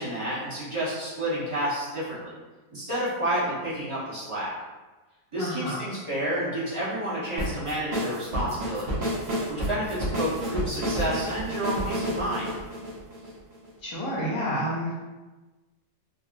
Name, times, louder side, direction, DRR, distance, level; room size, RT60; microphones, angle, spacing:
voice 1, 0.0-2.4 2.7-4.5 5.3-9.1 9.5-12.5, right 1 dB, 25° right, -11 dB, 0.7 m, -30 dB
voice 2, 5.4-5.8 13.8-14.9, equal, 70° left, -6 dB, 1.2 m, -29 dB
sound 1, 7.4-13.7, equal, 65° right, 0.4 m, -30 dB
3.8 x 2.0 x 2.5 m, 1.2 s
omnidirectional pair, 1.9 m